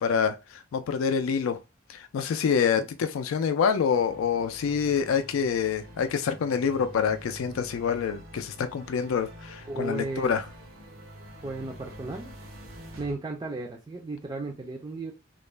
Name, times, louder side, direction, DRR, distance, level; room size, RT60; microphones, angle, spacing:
voice 1, 0.0-1.6 1.9-10.4, left 6 dB, 85° left, 0.3 m, -26 dB
sound 1, 3.9-13.1, right 1 dB, 85° right, 0.7 m, -46 dB
voice 2, 9.7-10.3 11.4-12.3 13.0-15.1, right 2 dB, 20° right, 0.3 m, -34 dB
2.4 x 2.1 x 3.1 m
head